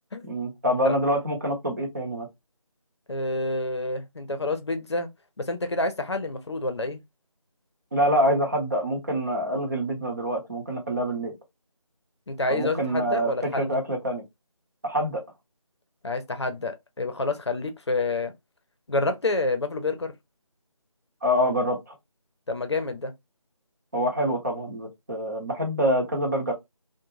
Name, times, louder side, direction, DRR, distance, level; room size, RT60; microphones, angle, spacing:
voice 1, 0.2-2.3 7.9-11.3 12.5-14.2 14.8-15.2 21.2-21.9 23.9-26.5, equal, 30° right, 0.8 m, -26 dB
voice 2, 3.1-5.1 5.4-7.0 12.3-13.8 16.0-18.3 18.9-20.1 22.5-23.1, left 2 dB, 50° left, 0.6 m, -28 dB
2.4 x 2.2 x 3.0 m
figure-of-eight pair, 165°, 18 cm